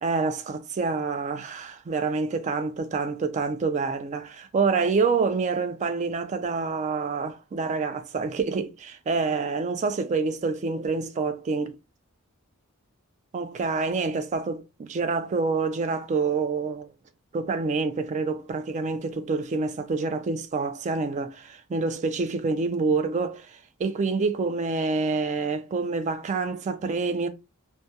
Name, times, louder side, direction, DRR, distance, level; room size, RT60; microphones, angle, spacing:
voice 1, 0.0-11.8 13.3-16.9 17.3-27.3, right 4 dB, 35° right, 0.3 m, -27 dB
2.2 x 2.1 x 2.6 m
head